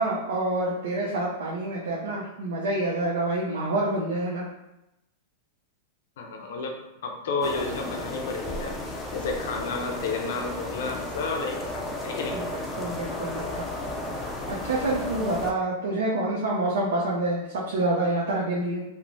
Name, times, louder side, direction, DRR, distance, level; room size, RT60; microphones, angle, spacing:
voice 1, 0.0-4.4 12.3-12.4 12.8-13.7 14.5-18.8, right 2 dB, 90° right, -4 dB, 0.5 m, -27 dB
voice 2, 6.2-8.8 9.1-12.4, left 3 dB, 70° left, 2 dB, 0.5 m, -31 dB
sound 1, 7.4-15.5, left 1 dB, 10° left, 0.3 m, -34 dB
3.0 x 2.0 x 2.5 m, 0.91 s
supercardioid pair, 150°, 0 cm